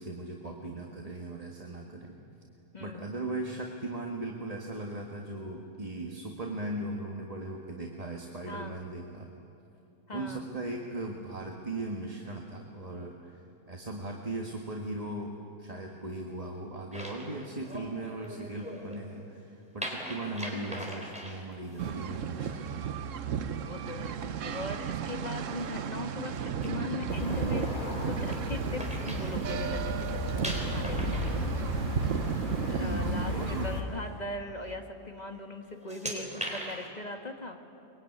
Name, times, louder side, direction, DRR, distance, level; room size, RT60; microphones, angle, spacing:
voice 1, 0.0-2.1 2.8-9.3 10.1-13.4 13.7-15.3 15.6-23.0 32.7-33.7, right 2 dB, 25° right, 0 dB, 1.7 m, -38 dB
voice 2, 2.7-3.1 8.5-8.9 10.1-10.5 23.7-31.4 32.7-37.6, left 2 dB, 30° left, 4 dB, 1.8 m, -40 dB
sound 1, 16.9-19.0 19.8-21.9 24.8-25.2 25.6-25.8 26.4-29.8 30.0-32.3 32.6-32.9 33.4-33.5 34.4-34.7 35.2-35.4 35.6-36.9, equal, 5° right, 3.8 m, -41 dB
sound 2, 21.8-33.7, right 8 dB, 65° right, 1.1 m, -34 dB
sound 3, 27.1-33.8, left 2 dB, 70° left, 3.2 m, -35 dB
23.5 x 22.5 x 9.4 m, 2.8 s
omnidirectional pair, 1.5 m